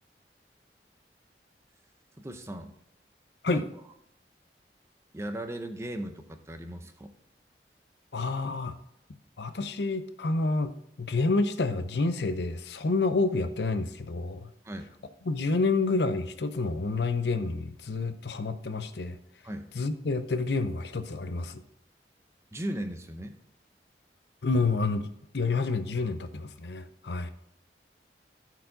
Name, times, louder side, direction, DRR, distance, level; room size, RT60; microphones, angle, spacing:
voice 1, 2.2-2.7 3.5-3.6 5.1-7.1 14.6-14.9 19.4-19.7 22.5-23.4, right 1 dB, 15° right, 7 dB, 0.6 m, -37 dB
voice 2, 8.1-8.8 9.4-10.7 11.0-14.5 15.2-19.2 19.7-21.6 24.4-25.1 25.3-27.3, left 3 dB, 70° left, 10 dB, 0.6 m, -28 dB
14.0 x 4.7 x 3.9 m, 0.77 s
head